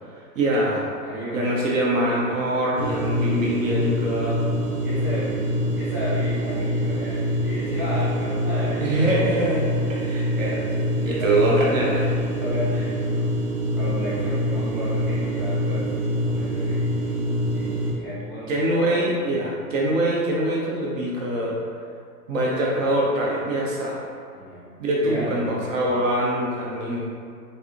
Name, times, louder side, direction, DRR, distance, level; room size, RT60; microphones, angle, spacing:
voice 1, 0.1-0.8 1.3-4.4 7.6-7.8 8.8-9.6 9.9-10.6 11.0-12.1 18.5-21.6 22.3-24.0 24.8-27.0, right 1 dB, 50° right, -4 dB, 0.7 m, -24 dB
voice 2, 1.0-1.5 4.6-9.0 11.0-11.4 12.4-13.3 13.8-17.3 17.5-18.5 24.3-24.6 25.0-25.9, equal, 5° right, -13 dB, 0.5 m, -33 dB
sound 1, 2.8-17.9, equal, 75° right, 1.0 m, -25 dB
3.3 x 2.6 x 2.7 m, 2.2 s
figure-of-eight pair, 105°, 50 cm